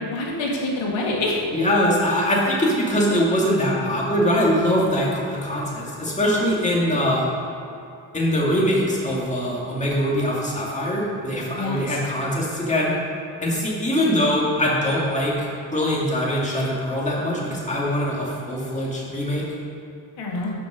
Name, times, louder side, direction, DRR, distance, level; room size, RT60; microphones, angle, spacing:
voice 1, 0.1-1.4 11.5-12.0 20.2-20.5, left 2 dB, 90° left, -2 dB, 2.1 m, -26 dB
voice 2, 1.5-7.3 8.1-13.0 13.4-15.5 15.7-19.5, equal, 15° left, -4 dB, 2.0 m, -22 dB
12.5 x 5.3 x 5.0 m, 2.7 s
wide cardioid pair, 140°, 44 cm